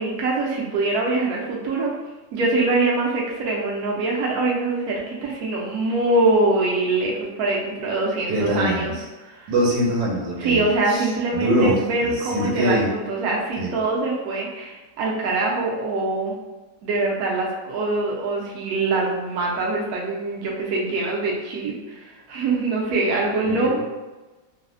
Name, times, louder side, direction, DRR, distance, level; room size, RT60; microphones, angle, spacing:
voice 1, 0.0-1.9 2.3-8.9 9.2-9.5 10.4-16.3 16.8-23.8, right 2 dB, 70° right, -3 dB, 0.9 m, -23 dB
voice 2, 8.3-9.0 9.5-12.9 13.6-13.8 23.4-23.8, equal, 90° right, -4 dB, 1.3 m, -24 dB
3.2 x 2.0 x 2.4 m, 1.1 s
omnidirectional pair, 1.9 m